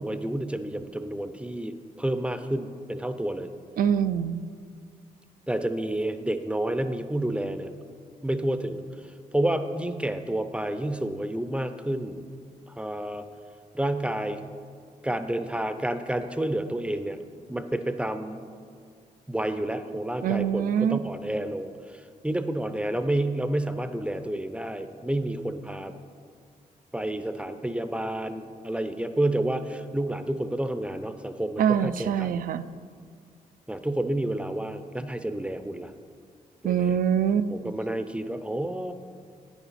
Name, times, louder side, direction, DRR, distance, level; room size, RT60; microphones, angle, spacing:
voice 1, 0.0-3.5 5.5-7.7 8.2-8.8 9.3-12.2 12.7-13.2 13.7-14.4 15.0-17.2 17.5-18.4 19.3-25.9 26.9-32.4 33.7-35.9 36.6-37.0 37.5-38.9, right 1 dB, 10° right, 9 dB, 0.5 m, -30 dB
voice 2, 3.8-4.4 20.2-21.0 31.6-32.6 36.6-37.5, right 8 dB, 75° right, 12 dB, 0.4 m, -24 dB
9.3 x 7.0 x 4.2 m, 2.1 s
cardioid pair, 70°, 15 cm